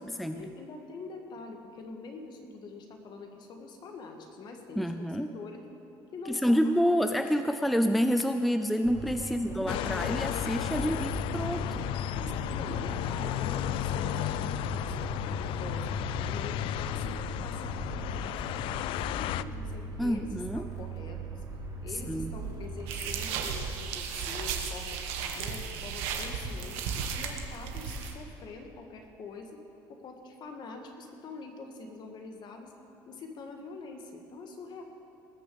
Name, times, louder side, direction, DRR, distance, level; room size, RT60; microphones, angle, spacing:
voice 1, 0.3-4.9 5.2-5.6 6.1-7.0 9.1-9.8 12.1-15.9 16.2-21.4 21.8-25.0 25.3-29.6 29.9-32.7 33.1-34.8, left 4 dB, 50° left, 4 dB, 1.8 m, -45 dB
voice 2, 4.8-5.3 6.3-11.9 20.0-20.6 22.1-22.3, equal, ahead, 8 dB, 0.5 m, -28 dB
sound 1, 8.8-23.7, right 5 dB, 40° right, 3.4 m, -40 dB
sound 2, 9.7-19.4, left 14 dB, 65° left, 0.4 m, -33 dB
sound 3, 22.9-28.1, right 6 dB, 85° right, 1.4 m, -35 dB
19.5 x 6.8 x 7.0 m, 2.8 s
cardioid pair, 110°, 10 cm